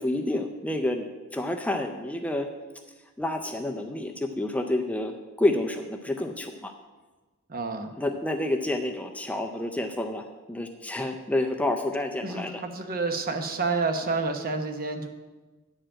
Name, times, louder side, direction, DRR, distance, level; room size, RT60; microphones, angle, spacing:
voice 1, 0.0-2.5 3.2-6.7 8.0-12.6, left 1 dB, 5° left, 4 dB, 0.5 m, -29 dB
voice 2, 7.5-7.9 12.2-15.1, right 4 dB, 45° right, 6 dB, 0.9 m, -29 dB
10.0 x 4.9 x 7.6 m, 1.2 s
head